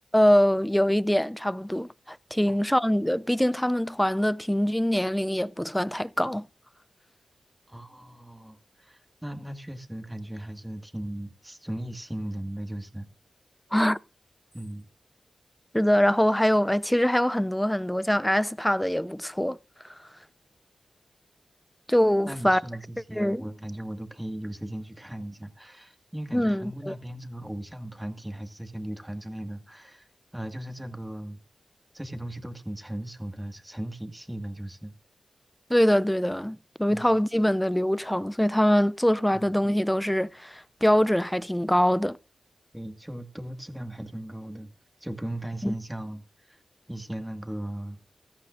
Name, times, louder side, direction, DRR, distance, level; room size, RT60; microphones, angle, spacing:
voice 1, 0.1-6.5 13.7-14.0 15.7-19.6 21.9-22.6 23.1-23.4 26.3-27.0 35.7-42.2 45.6-45.7, equal, 5° left, 0.5 m, -23 dB
voice 2, 7.7-13.1 14.5-14.9 22.3-30.0 30.3-31.4 31.9-34.9 36.9-37.1 39.3-39.5 42.7-44.7 45.0-46.6 46.9-48.0, right 1 dB, 10° right, 1.9 m, -37 dB
16.0 x 13.0 x 2.6 m
cardioid pair, 45°, 0 cm